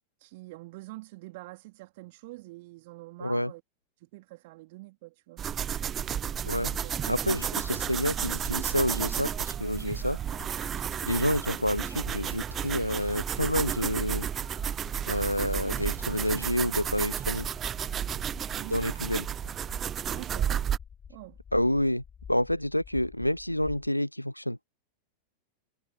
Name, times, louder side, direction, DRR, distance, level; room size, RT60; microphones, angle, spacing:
voice 1, 0.2-3.6 4.0-5.5 6.6-6.9 18.5-18.8 20.1-20.7 21.1-21.4, right 21 dB, 50° right, 3.1 m, -46 dB
voice 2, 3.2-3.5 6.4-6.7 7.1-10.2 11.0-14.3 15.1-17.5 18.7-19.3 21.5-22.0 22.3-24.6, left 1 dB, 90° left, 0.5 m, -28 dB
sound 1, 5.4-20.8, right 9 dB, 25° right, 0.5 m, -32 dB
sound 2, 6.0-23.9, left 7 dB, 20° left, 3.1 m, -49 dB
figure-of-eight pair, 90°, 0 cm